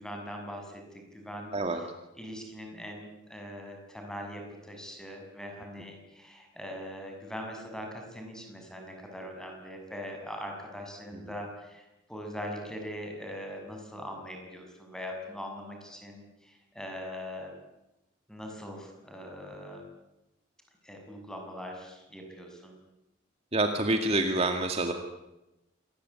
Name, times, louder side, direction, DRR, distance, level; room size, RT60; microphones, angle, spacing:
voice 1, 0.0-1.5 2.2-17.5 18.3-19.8 20.8-22.8, equal, 5° left, 2 dB, 6.5 m, -41 dB
voice 2, 23.5-24.9, right 2 dB, 35° right, 5 dB, 2.0 m, -27 dB
26.5 x 20.0 x 9.7 m, 0.95 s
head